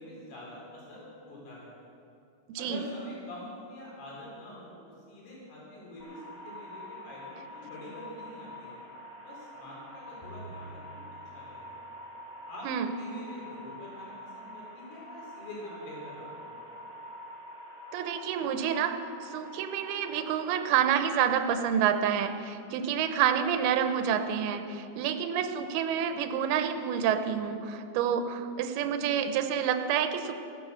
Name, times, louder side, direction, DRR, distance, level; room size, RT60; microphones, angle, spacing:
voice 1, 0.0-1.7 2.6-8.8 9.2-11.0 11.3-11.8 12.5-16.8, left 1 dB, 65° left, -5 dB, 6.0 m, -45 dB
sound 1, 6.0-21.0, equal, 5° left, 3.2 m, -46 dB
sound 2, 10.2-12.0, right 3 dB, 90° left, 5.2 m, -48 dB
voice 2, 17.9-19.0 19.3-30.3, right 8 dB, 80° right, 7 dB, 2.4 m, -28 dB
17.0 x 10.0 x 6.8 m, 2.6 s
omnidirectional pair, 5.0 m